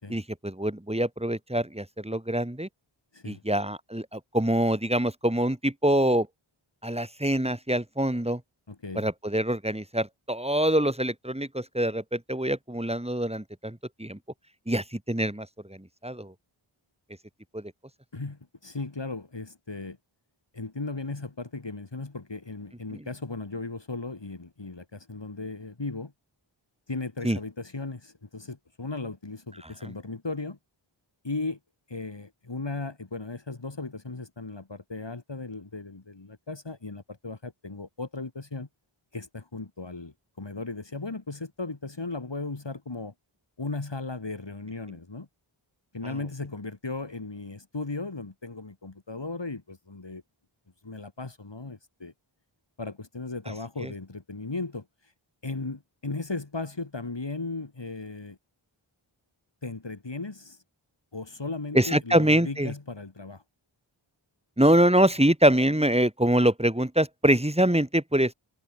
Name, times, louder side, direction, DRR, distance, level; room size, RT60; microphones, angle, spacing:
voice 1, 0.1-2.7 3.2-6.3 6.8-8.4 8.9-14.2 14.7-16.3 17.5-17.7 22.9-23.0 27.2-27.4 61.7-62.7 64.6-68.3, right 1 dB, 10° right, 3.3 m, -25 dB
voice 2, 8.7-9.1 18.1-20.0 20.5-26.1 26.9-30.6 31.2-31.6 31.9-38.7 39.1-43.1 43.6-45.3 45.9-50.2 50.8-52.1 52.8-55.1 55.4-58.4 59.6-60.6 61.1-63.4, left 3 dB, 60° left, 6.1 m, -36 dB
wide cardioid pair, 55°, 49 cm